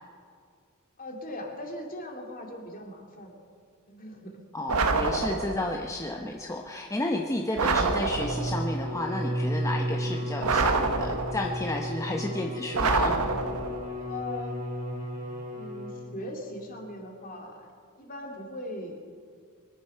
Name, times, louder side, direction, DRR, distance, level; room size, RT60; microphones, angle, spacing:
voice 1, 1.0-3.3 3.9-4.4 6.1-6.3 13.0-13.4 14.0-14.6 15.5-17.7 18.0-19.0, left 1 dB, 40° left, 1 dB, 2.5 m, -40 dB
voice 2, 4.5-13.2, left 2 dB, 15° left, 2 dB, 0.8 m, -32 dB
sound 1, 4.7-5.8 7.6-8.7 10.4-11.6 12.7-13.9, right 4 dB, 90° right, 1.2 m, -27 dB
Bowed string instrument, 8.0-16.3, equal, 35° right, 2.4 m, -34 dB
23.5 x 11.0 x 5.5 m, 2.2 s
head